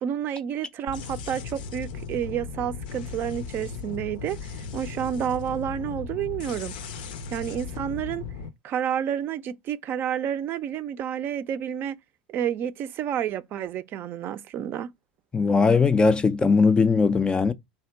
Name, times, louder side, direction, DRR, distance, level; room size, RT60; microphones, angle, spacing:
voice 1, 0.0-6.8 7.3-8.2 8.6-12.0 12.3-14.9, right 9 dB, 45° right, 0.4 m, -30 dB
sound 1, 0.9-8.5, left 5 dB, 70° left, 0.5 m, -37 dB
voice 2, 15.3-17.5, left 4 dB, 20° left, 0.4 m, -19 dB
3.4 x 2.8 x 4.4 m
hypercardioid pair, 90°, 5 cm